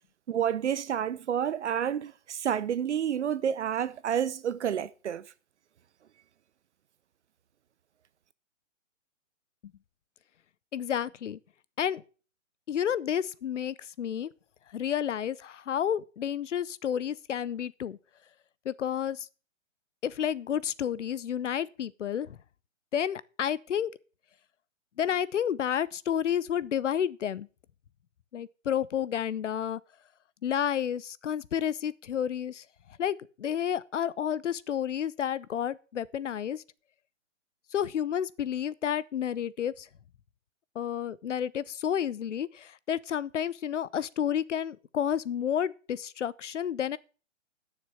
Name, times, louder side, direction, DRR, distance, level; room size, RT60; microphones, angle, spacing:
voice 1, 0.3-5.2, right 9 dB, 60° right, 0.7 m, -29 dB
voice 2, 10.7-11.4 11.8-12.0 12.7-14.3 14.7-18.0 18.6-19.3 20.0-22.4 22.9-23.9 25.0-27.5 28.3-29.8 30.4-32.6 33.0-36.6 37.7-39.9 40.7-47.0, left 9 dB, 65° left, 0.8 m, -30 dB
10.5 x 6.8 x 7.1 m
hypercardioid pair, 135°, 38 cm